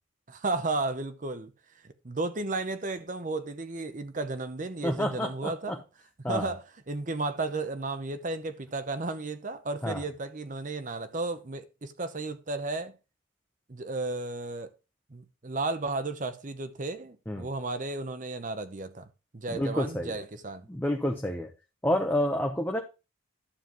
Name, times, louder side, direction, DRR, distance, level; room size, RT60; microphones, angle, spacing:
voice 1, 0.3-1.5 1.8-5.8 6.3-12.9 13.7-14.7 15.1-19.1 19.3-20.7, right 3 dB, 40° right, 0.7 m, -33 dB
voice 2, 4.8-5.8 6.2-6.5 9.8-10.0 17.3-17.5 19.5-20.1 20.7-21.5 21.8-22.8, left 1 dB, 10° left, 0.8 m, -29 dB
11.5 x 7.4 x 3.0 m
head